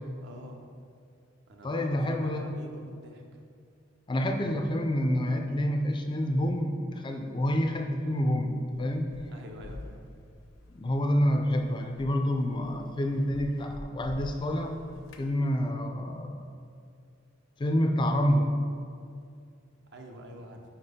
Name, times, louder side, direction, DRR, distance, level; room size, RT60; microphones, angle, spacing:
voice 1, 0.2-0.6 1.5-3.4 9.3-10.0 19.9-20.6, right 1 dB, 60° right, 2 dB, 0.6 m, -46 dB
voice 2, 1.6-2.5 4.1-9.1 10.7-14.8 15.2-16.5 17.6-18.5, equal, 25° left, 4 dB, 0.3 m, -28 dB
sound 1, 8.7-15.3, left 1 dB, 75° left, 0.6 m, -47 dB
4.6 x 4.4 x 4.9 m, 2.3 s
head